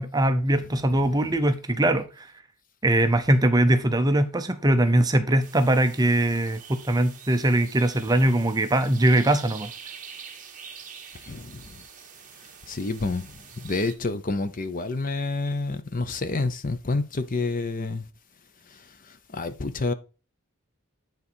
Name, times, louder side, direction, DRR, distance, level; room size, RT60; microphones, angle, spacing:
voice 1, 0.0-2.3 2.8-9.7, right 1 dB, 15° right, 0.6 m, -21 dB
sound 1, 5.4-13.9, right 7 dB, 35° right, 1.3 m, -45 dB
voice 2, 11.3-11.8 12.7-18.0 18.7-19.9, left 3 dB, 40° left, 0.7 m, -29 dB
9.8 x 3.9 x 4.4 m
head